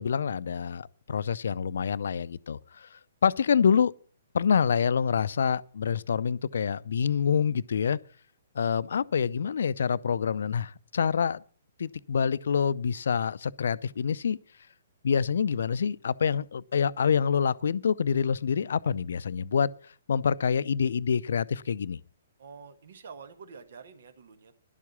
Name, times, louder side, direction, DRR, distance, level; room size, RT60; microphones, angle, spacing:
voice 1, 0.0-2.9 3.2-3.9 4.3-8.0 8.6-11.4 11.8-14.4 15.0-19.7 20.1-22.0, left 7 dB, 70° left, 0.5 m, -26 dB
voice 2, 22.4-24.6, right 5 dB, 65° right, 1.5 m, -47 dB
11.0 x 7.4 x 8.2 m
hypercardioid pair, 130°, 0 cm